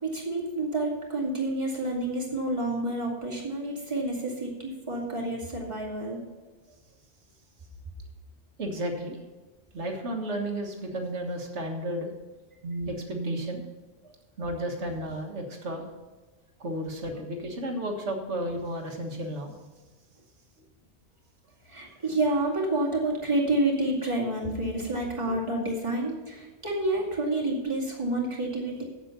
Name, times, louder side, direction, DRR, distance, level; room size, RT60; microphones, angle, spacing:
voice 1, 0.0-6.2 21.7-28.8, right 2 dB, 25° right, -4 dB, 2.5 m, -29 dB
voice 2, 8.6-9.2 9.7-12.1 12.6-13.7 14.4-15.9 16.6-19.6, right 1 dB, 80° right, 3 dB, 1.8 m, -33 dB
8.0 x 8.0 x 6.7 m, 1.3 s
omnidirectional pair, 1.2 m